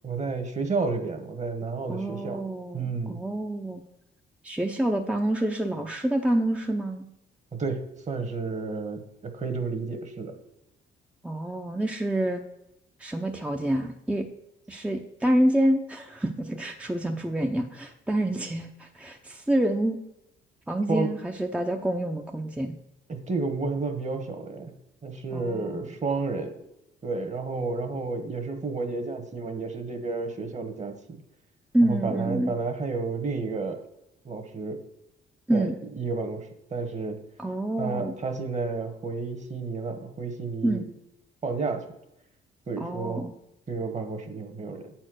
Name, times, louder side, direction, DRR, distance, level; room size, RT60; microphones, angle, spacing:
voice 1, 0.0-2.4 2.7-3.2 7.5-10.4 20.9-21.1 23.1-24.7 25.0-26.6 27.0-31.2 31.9-33.8 34.2-34.8 35.5-37.2 37.8-40.8 41.4-41.9 42.7-43.3 43.7-44.9, right 4 dB, 35° right, 7 dB, 1.4 m, -31 dB
voice 2, 1.9-3.8 4.4-7.1 11.2-12.4 13.0-14.3 14.7-20.0 20.7-22.7 25.3-25.9 31.7-32.5 35.5-35.8 37.4-38.1 40.6-40.9 42.8-43.3, right 1 dB, 5° right, 3 dB, 0.6 m, -27 dB
8.2 x 4.4 x 6.3 m, 0.87 s
cardioid pair, 90°, 20 cm